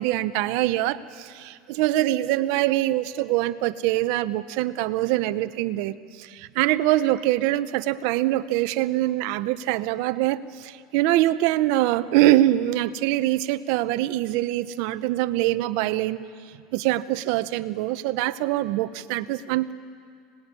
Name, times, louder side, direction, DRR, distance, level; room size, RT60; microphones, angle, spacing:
voice 1, 0.0-16.2 16.7-19.7, right 15 dB, 70° right, 12 dB, 0.9 m, -24 dB
25.5 x 19.5 x 9.9 m, 2.2 s
supercardioid pair, 115°, 0 cm